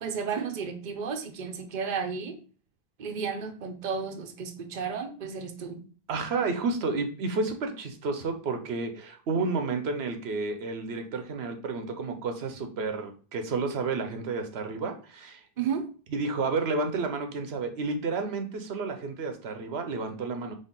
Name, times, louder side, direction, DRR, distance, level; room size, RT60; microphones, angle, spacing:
voice 1, 0.0-2.4 3.0-5.8 15.6-15.9, right 6 dB, 55° right, 5 dB, 0.8 m, -33 dB
voice 2, 6.1-15.4 16.1-20.5, right 4 dB, 90° right, 6 dB, 1.0 m, -31 dB
4.3 x 3.3 x 3.7 m, 0.38 s
omnidirectional pair, 1.0 m